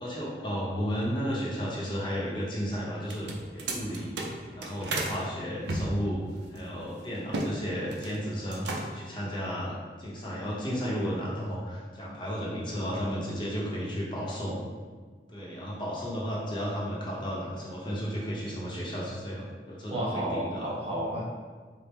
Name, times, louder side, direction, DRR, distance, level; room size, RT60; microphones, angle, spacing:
voice 1, 0.0-3.3 3.5-4.1 4.5-6.2 6.5-14.6 15.3-20.7, equal, 25° left, -6 dB, 0.7 m, -33 dB
sound 1, 3.0-5.2 5.7-7.5 7.8-8.2 8.5-9.1, right 2 dB, 80° right, 0.5 m, -34 dB
voice 2, 19.9-21.3, right 1 dB, 35° right, -5 dB, 0.6 m, -31 dB
4.2 x 2.0 x 3.3 m, 1.5 s
head